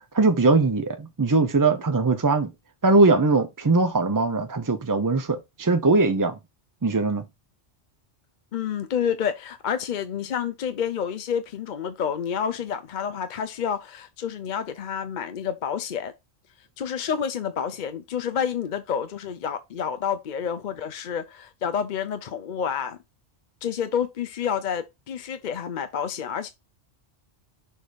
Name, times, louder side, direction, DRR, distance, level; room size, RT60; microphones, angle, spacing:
voice 1, 0.1-2.5 2.8-6.4 6.8-7.2, right 3 dB, 30° right, 0.4 m, -21 dB
voice 2, 8.5-16.1 16.8-23.0 23.6-26.5, left 8 dB, 55° left, 0.6 m, -29 dB
6.5 x 3.4 x 5.0 m
omnidirectional pair, 1.1 m